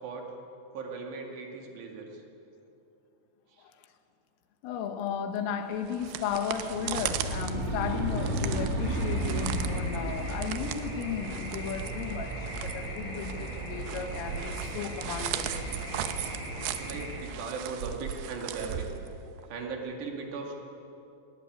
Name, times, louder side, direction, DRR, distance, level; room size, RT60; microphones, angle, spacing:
voice 1, 0.7-2.2 16.8-18.9 19.5-20.5, right 4 dB, 60° right, 1 dB, 4.2 m, -38 dB
voice 2, 4.6-15.6, left 8 dB, 85° left, 7 dB, 3.9 m, -35 dB
sound 1, 5.7-19.5, right 11 dB, 80° right, 2.4 m, -38 dB
sound 2, 6.6-10.5, right 1 dB, 35° right, 2.0 m, -32 dB
sound 3, 8.8-17.2, right 1 dB, 55° left, 8.9 m, -38 dB
18.5 x 18.0 x 9.5 m, 2.8 s
omnidirectional pair, 5.7 m